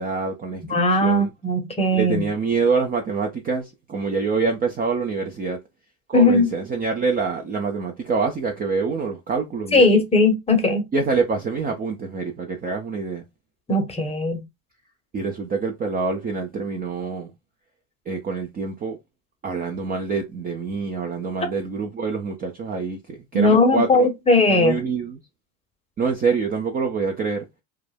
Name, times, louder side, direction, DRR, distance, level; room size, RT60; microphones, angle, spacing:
voice 1, 0.0-1.3 1.9-5.6 6.1-9.9 10.9-13.2 15.1-17.3 18.1-19.0 19.4-24.1 24.5-25.2 26.0-27.4, right 4 dB, 20° right, 0.4 m, -26 dB
voice 2, 0.7-2.2 6.1-6.5 9.7-10.8 13.7-14.4 23.3-24.8, left 2 dB, 15° left, 0.8 m, -18 dB
2.3 x 2.0 x 3.2 m
hypercardioid pair, 95°, 42 cm